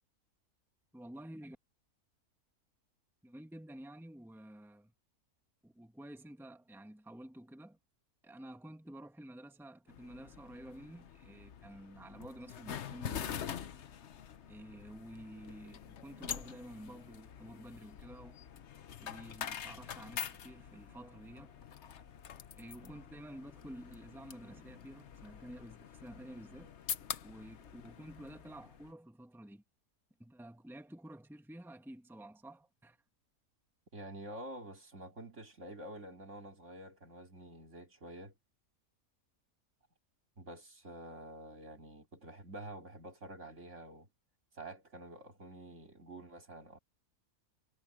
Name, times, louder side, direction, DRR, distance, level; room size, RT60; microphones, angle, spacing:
voice 1, 0.9-1.6 3.2-4.9 5.6-7.8 8.2-13.5 14.5-18.4 19.0-21.6 22.6-26.7 27.2-29.6 30.2-33.0, right 1 dB, ahead, 1.7 m, -51 dB
sound 1, 9.9-28.9, left 8 dB, 55° left, 1.0 m, -45 dB
voice 2, 33.9-38.3 40.4-44.1 44.5-46.8, right 1 dB, 50° right, 2.9 m, -48 dB
omnidirectional pair, 1.6 m